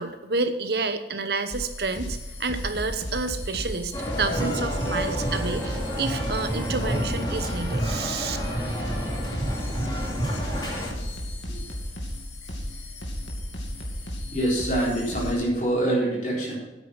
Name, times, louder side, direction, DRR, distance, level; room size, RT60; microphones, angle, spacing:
voice 1, 0.0-3.9 4.2-8.4, right 3 dB, 60° right, 9 dB, 1.0 m, -29 dB
sound 1, 1.5-15.3, left 1 dB, 80° left, 2.6 m, -34 dB
sound 2, 3.9-10.9, equal, 25° left, 2.6 m, -29 dB
voice 2, 14.3-16.6, right 1 dB, 45° left, -4 dB, 4.0 m, -25 dB
9.4 x 8.7 x 5.7 m, 1.1 s
head